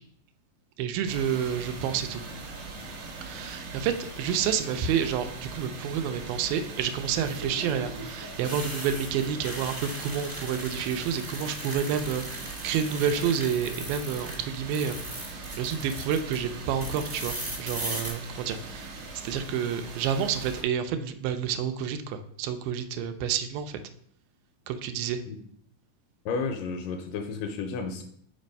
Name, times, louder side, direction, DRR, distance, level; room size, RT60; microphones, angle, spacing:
voice 1, 0.8-2.2 3.2-12.2 12.6-15.3 15.6-18.9 19.2-23.8 24.7-25.2, right 8 dB, 85° right, 9 dB, 2.3 m, -29 dB
sound 1, 1.1-20.6, right 3 dB, 65° right, 1.7 m, -41 dB
sound 2, 4.7-5.2 7.1-14.4 14.7-16.4 16.8-18.1, right 1 dB, 30° right, 0.7 m, -39 dB
voice 2, 26.3-28.0, left 4 dB, 80° left, 5 dB, 2.0 m, -32 dB
5.3 x 4.3 x 5.2 m, 0.66 s
omnidirectional pair, 4.2 m